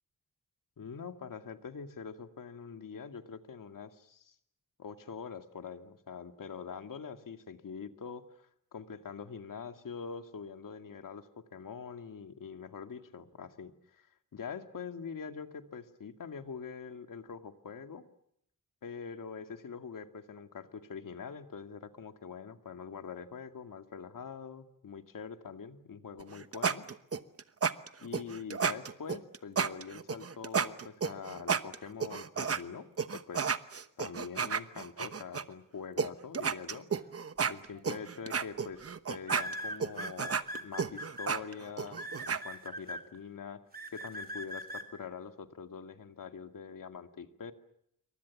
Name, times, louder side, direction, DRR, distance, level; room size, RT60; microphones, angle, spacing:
voice 1, 0.8-4.4 4.8-14.1 14.3-18.1 18.8-26.9 28.0-32.9 33.1-33.5 34.0-36.9 37.5-38.8 39.1-43.6 43.9-47.5, left 6 dB, 75° left, 8 dB, 2.2 m, -44 dB
sound 1, 26.2-32.6 33.0-35.4 36.0-36.1 36.3-42.4, right 6 dB, 45° right, 1.1 m, -32 dB
sound 2, 37.8-38.0 39.2-41.3 42.0-43.0 43.7-44.8, equal, 25° right, 3.1 m, -40 dB
28.0 x 24.0 x 7.2 m, 0.73 s
wide cardioid pair, 155°, 33 cm